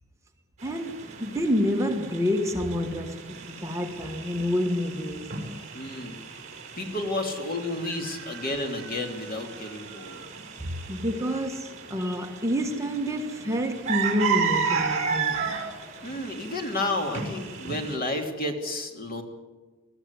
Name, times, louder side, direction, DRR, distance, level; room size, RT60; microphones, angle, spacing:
voice 1, 0.6-5.4 10.6-15.5, left 1 dB, 15° right, 1.5 m, -28 dB
sound 1, 0.6-18.0, right 6 dB, 35° right, 5.0 m, -34 dB
voice 2, 5.7-6.2 6.8-10.3 16.0-19.2, left 2 dB, 45° left, 2.9 m, -31 dB
21.0 x 14.0 x 9.8 m
head